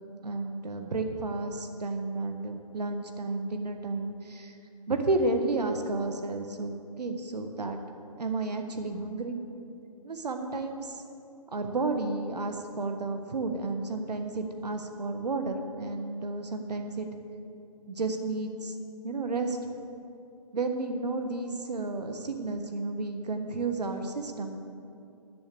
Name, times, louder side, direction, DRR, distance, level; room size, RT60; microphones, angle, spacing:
voice 1, 0.2-4.5 4.9-7.8 8.2-9.4 10.0-10.9 11.5-17.1 17.9-18.7 19.0-19.6 20.5-24.6, right 3 dB, 90° right, 6 dB, 1.3 m, -32 dB
11.0 x 7.4 x 6.8 m, 2.6 s
hypercardioid pair, 165°, 20 cm